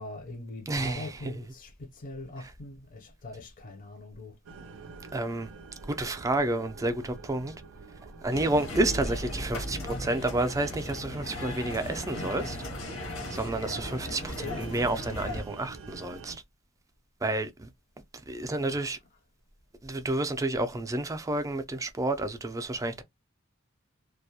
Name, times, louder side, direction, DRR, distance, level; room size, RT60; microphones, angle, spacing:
voice 1, 0.0-4.4 14.2-14.7 18.7-18.9, left 2 dB, 40° left, 0.5 m, -42 dB
voice 2, 0.7-1.4 2.4-2.5 5.1-5.5 5.8-7.5 8.2-12.6 13.3-16.4 17.2-17.7 18.3-19.0 19.8-23.0, right 2 dB, 15° right, 0.4 m, -30 dB
sound 1, 4.5-16.4, right 4 dB, 80° right, 0.5 m, -47 dB
sound 2, 8.3-15.4, left 1 dB, 75° left, 0.9 m, -37 dB
2.2 x 2.1 x 2.7 m
head